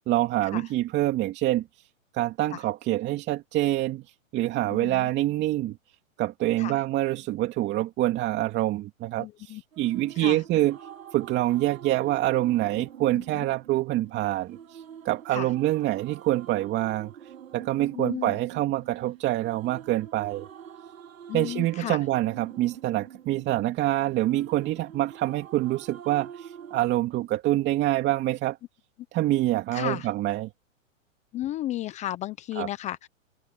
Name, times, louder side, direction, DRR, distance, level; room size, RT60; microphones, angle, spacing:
voice 1, 0.0-1.9 2.1-5.8 6.2-10.8 11.1-20.5 21.3-28.6 29.1-30.5 32.6-32.7, right 15 dB, 25° right, 2.6 m, -26 dB
voice 2, 4.7-5.1 6.6-6.8 9.2-9.6 10.2-10.4 13.1-13.4 15.3-15.5 17.9-18.4 21.3-22.0 29.7-30.1 31.3-33.1, left 13 dB, 15° left, 0.7 m, -34 dB
sound 1, 9.7-26.8, right 9 dB, 75° right, 5.1 m, -46 dB
hypercardioid pair, 135°, 41 cm